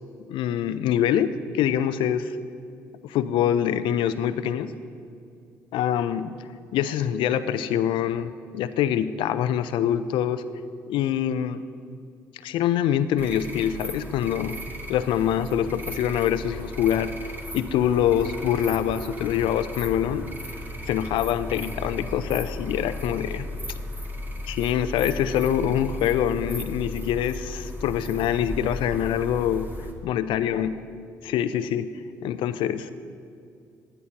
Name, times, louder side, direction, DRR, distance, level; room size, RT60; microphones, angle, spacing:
voice 1, 0.3-2.4 3.0-4.7 5.7-6.3 6.7-10.4 10.9-11.6 12.4-14.6 14.9-17.1 17.5-20.3 20.9-23.5 24.5-29.7 30.0-30.8 31.2-31.9 32.2-32.9, left 10 dB, 75° left, 12 dB, 0.5 m, -25 dB
sound 1, 13.2-29.9, left 1 dB, 25° right, 1.8 m, -36 dB
15.5 x 11.0 x 2.9 m, 2.4 s
hypercardioid pair, 55°, 9 cm